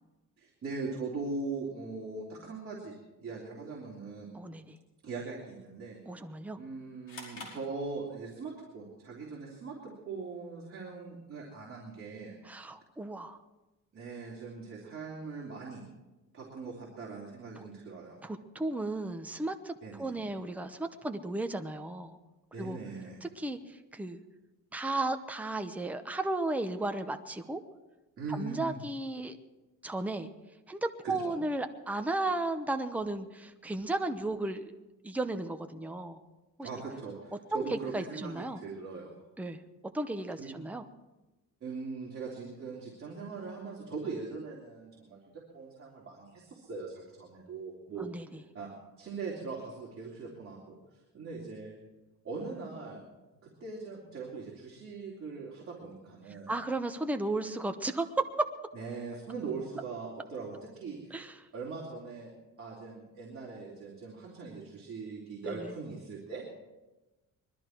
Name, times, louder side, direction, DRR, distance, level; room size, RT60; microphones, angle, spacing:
voice 1, 0.4-4.3 5.0-6.0 6.5-12.3 13.9-15.8 16.3-18.2 19.8-20.2 22.5-23.2 28.2-28.8 31.0-31.3 36.6-39.1 40.4-40.6 41.6-48.1 48.5-50.8 51.1-51.8 52.2-53.0 53.4-56.5 58.7-61.1 61.5-62.3 62.6-66.4, right 4 dB, 40° right, -4 dB, 3.2 m, -41 dB
voice 2, 4.3-4.8 6.1-6.6 12.4-13.4 17.6-17.7 18.2-22.2 22.6-22.8 23.4-24.2 24.7-27.6 28.3-29.4 29.8-30.3 30.7-34.7 35.0-36.2 36.6-36.7 37.5-38.6 39.4-39.6 39.9-40.8 48.0-48.3 56.5-58.2 61.1-61.3 65.4-65.7, right 2 dB, 5° right, 7 dB, 0.8 m, -34 dB
sound 1, 7.1-8.5, left 3 dB, 40° left, 5.1 m, -47 dB
21.0 x 13.0 x 4.5 m, 1.1 s
cardioid pair, 135°, 32 cm